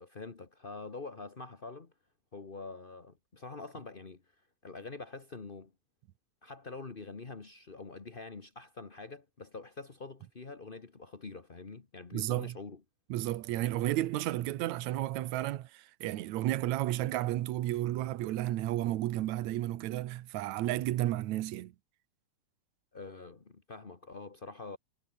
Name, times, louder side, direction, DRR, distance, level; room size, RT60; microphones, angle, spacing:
voice 1, 0.0-1.9 2.3-4.2 4.6-5.7 6.4-12.8 22.9-24.8, left 3 dB, 45° left, 0.6 m, -45 dB
voice 2, 12.1-12.6 13.1-21.7, right 14 dB, 70° right, 2.2 m, -32 dB
omnidirectional pair, 3.7 m